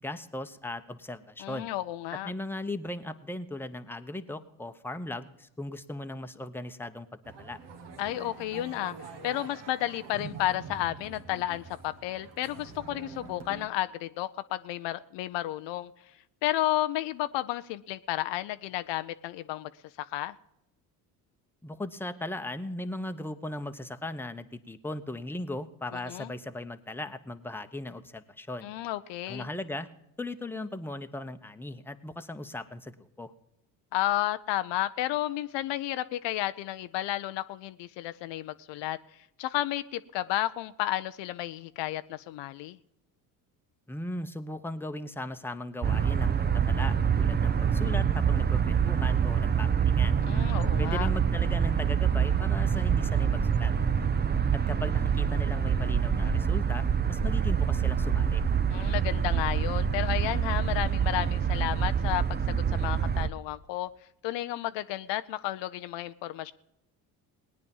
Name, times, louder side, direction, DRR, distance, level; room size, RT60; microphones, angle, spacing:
voice 1, 0.0-1.7 2.2-7.1 7.4-7.6 21.6-28.7 29.3-29.9 30.2-33.3 43.9-50.1 50.8-53.7 54.5-58.4, left 1 dB, 5° left, 8 dB, 0.9 m, -38 dB
voice 2, 1.4-2.3 8.0-8.9 9.2-15.9 16.4-19.7 20.0-20.3 25.9-26.3 28.6-29.5 33.9-39.0 39.4-42.8 50.3-51.1 58.7-63.9 64.2-66.5, left 15 dB, 70° left, 13 dB, 0.6 m, -32 dB
sound 1, 7.2-13.7, right 5 dB, 65° right, 1.7 m, -45 dB
sound 2, 45.8-63.3, right 7 dB, 20° right, 0.7 m, -26 dB
18.5 x 9.5 x 5.4 m, 0.85 s
supercardioid pair, 70°, 46 cm